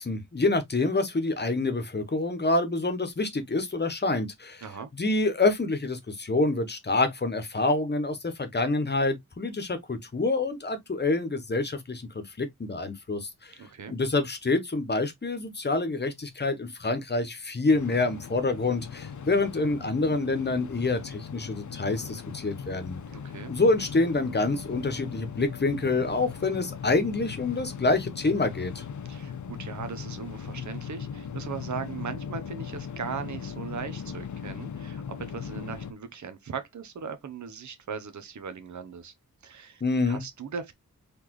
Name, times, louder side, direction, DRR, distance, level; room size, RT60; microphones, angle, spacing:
voice 1, 0.0-4.6 4.9-13.5 13.9-23.0 23.5-28.8 39.8-40.2, left 3 dB, 30° left, 1.0 m, -27 dB
voice 2, 13.6-13.9 23.1-23.5 29.1-39.1 39.4-40.7, right 6 dB, 65° right, 0.8 m, -38 dB
sound 1, 17.7-35.9, left 7 dB, 65° left, 0.7 m, -39 dB
4.1 x 3.3 x 3.1 m
wide cardioid pair, 130°, 32 cm